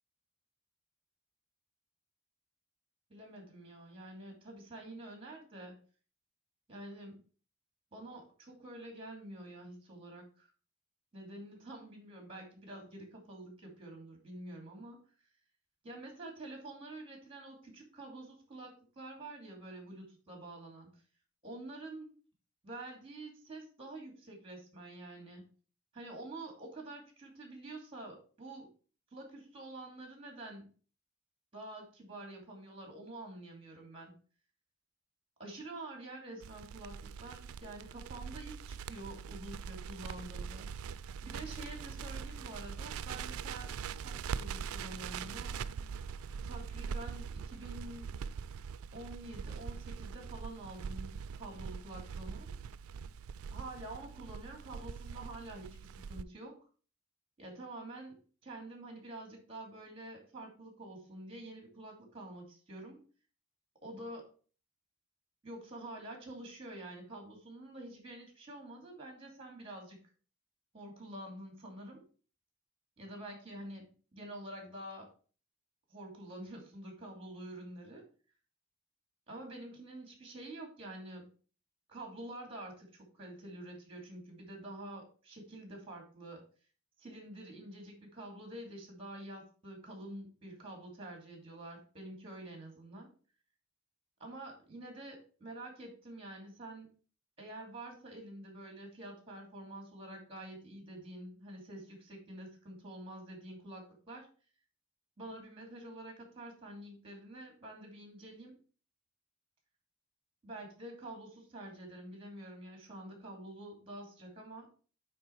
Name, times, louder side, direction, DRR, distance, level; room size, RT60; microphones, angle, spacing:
voice 1, 3.1-5.8 6.7-7.2 7.9-10.5 11.1-15.0 15.8-20.9 21.4-22.1 22.6-25.5 25.9-28.7 29.1-30.7 31.5-34.1 35.4-40.9 41.2-43.7 44.0-45.6 46.4-48.1 48.9-52.5 53.5-56.6 57.4-63.0 63.8-64.3 65.4-70.0 70.7-72.1 73.0-75.1 75.9-78.0 79.3-81.3 81.9-86.4 87.0-93.1 94.2-96.9 97.4-104.3 105.2-108.6 110.4-114.7, right 1 dB, 25° right, 1 dB, 2.6 m, -47 dB
Crackle, 36.4-56.2, right 6 dB, 85° right, 0.3 m, -42 dB
9.1 x 3.7 x 4.5 m, 0.39 s
head